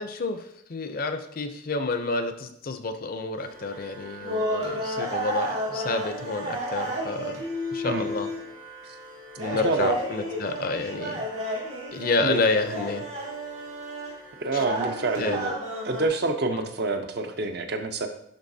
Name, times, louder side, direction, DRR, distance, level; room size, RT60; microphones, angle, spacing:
voice 1, 0.0-7.4 7.7-8.3 9.4-11.2 11.9-13.1 14.5-14.6 15.2-15.4 16.5-16.6, left 3 dB, 45° left, 8 dB, 0.5 m, -29 dB
sound 1, 3.4-16.1, equal, 80° right, 1.9 m, -32 dB
voice 2, 9.5-10.0 12.2-12.4 14.4-15.5 15.8-18.1, right 3 dB, 55° right, 5 dB, 0.6 m, -27 dB
10.5 x 3.9 x 2.7 m, 0.76 s
head